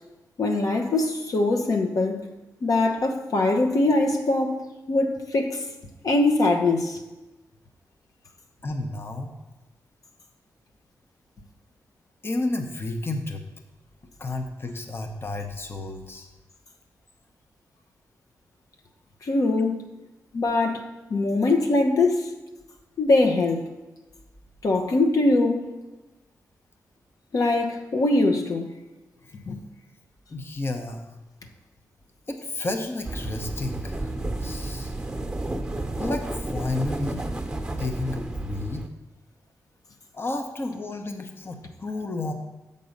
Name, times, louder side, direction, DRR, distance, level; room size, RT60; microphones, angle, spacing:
voice 1, 0.4-2.3 2.6-5.6 6.0-7.0 19.2-19.8 20.3-20.8 21.1-22.3 23.0-23.6 24.6-25.6 27.3-28.7 29.5-29.6, left 2 dB, 65° left, 3 dB, 0.9 m, -22 dB
voice 2, 8.6-9.3 12.2-13.4 14.2-16.3 30.3-31.0 32.3-34.1 34.4-34.9 36.0-37.2 37.8-38.9 40.1-42.3, left 2 dB, 35° left, 5 dB, 0.9 m, -31 dB
sound 1, 33.0-38.9, right 2 dB, 10° right, 1.0 m, -31 dB
6.9 x 5.4 x 5.2 m, 1.1 s
cardioid pair, 55°, 7 cm